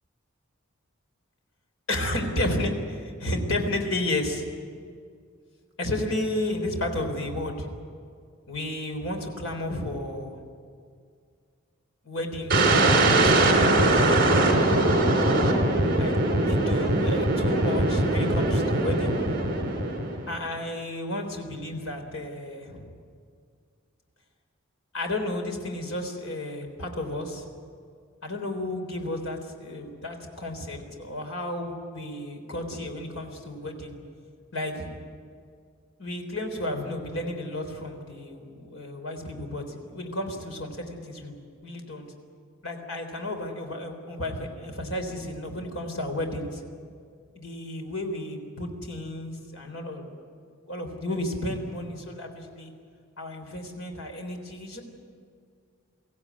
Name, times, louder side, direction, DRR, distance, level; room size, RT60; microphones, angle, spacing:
voice 1, 1.9-4.4 5.8-7.7 8.5-10.4 12.0-14.8 15.9-19.2 20.3-22.9 24.9-27.5 28.2-33.9 34.5-34.9 36.0-42.1 42.6-46.6 47.3-50.1 50.7-52.7 53.2-54.8, left 1 dB, 75° left, 4 dB, 3.7 m, -32 dB
sound 1, 12.5-20.4, right 2 dB, 45° right, 3.5 m, -21 dB
23.5 x 16.0 x 9.5 m, 2.2 s
head